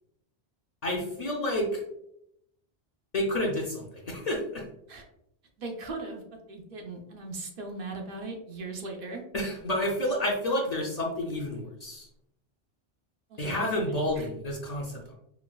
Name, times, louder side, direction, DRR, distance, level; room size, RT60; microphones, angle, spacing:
voice 1, 0.8-1.8 3.1-4.6 9.3-12.1 13.4-15.2, left 1 dB, 50° left, -1 dB, 0.6 m, -30 dB
voice 2, 5.6-6.2 6.5-9.2 13.3-14.3, right 3 dB, 65° right, 2 dB, 0.8 m, -39 dB
4.4 x 2.2 x 2.2 m, 0.77 s
omnidirectional pair, 1.0 m